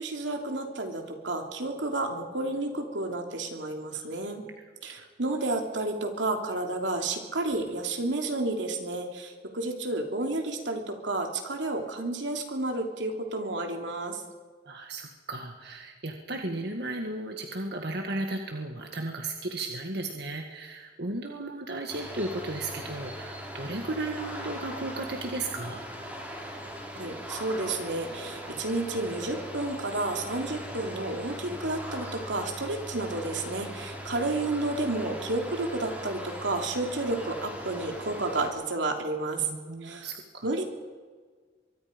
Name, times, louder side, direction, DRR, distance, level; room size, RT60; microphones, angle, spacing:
voice 1, 0.0-4.4 4.8-14.2 26.9-39.5 39.8-40.1 40.4-40.6, right 2 dB, 90° right, 3 dB, 3.0 m, -31 dB
voice 2, 14.7-25.8 39.4-40.5, right 2 dB, 65° right, 3 dB, 1.8 m, -35 dB
sound 1, 21.9-38.5, equal, 10° right, 5.3 m, -40 dB
24.0 x 23.5 x 5.3 m, 1.5 s
head